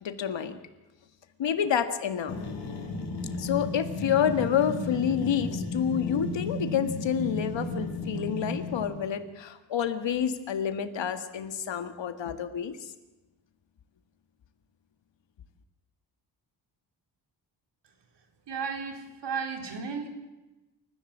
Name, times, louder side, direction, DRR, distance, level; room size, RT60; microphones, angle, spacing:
voice 1, 0.0-0.6 1.4-2.4 3.4-12.9, left 8 dB, 80° left, 9 dB, 2.0 m, -28 dB
sound 1, 2.3-9.1, left 2 dB, 65° left, 6.3 m, -34 dB
voice 2, 18.5-20.1, right 5 dB, 70° right, 4 dB, 4.1 m, -34 dB
29.0 x 14.5 x 7.5 m, 1.1 s
wide cardioid pair, 125°, 44 cm